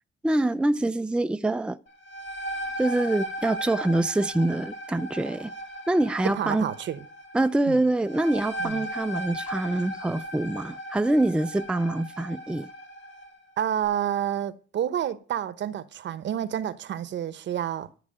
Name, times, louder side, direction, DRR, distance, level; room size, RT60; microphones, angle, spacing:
voice 1, 0.2-1.8 2.8-5.5 5.9-6.6 7.3-12.7, right 2 dB, 5° right, 0.5 m, -25 dB
sound 1, 1.9-13.4, equal, 70° left, 5.9 m, -37 dB
voice 2, 6.2-7.0 7.7-7.8 8.6-8.9 13.6-17.9, right 10 dB, 65° right, 1.0 m, -29 dB
14.0 x 4.8 x 8.8 m
cardioid pair, 90°, 20 cm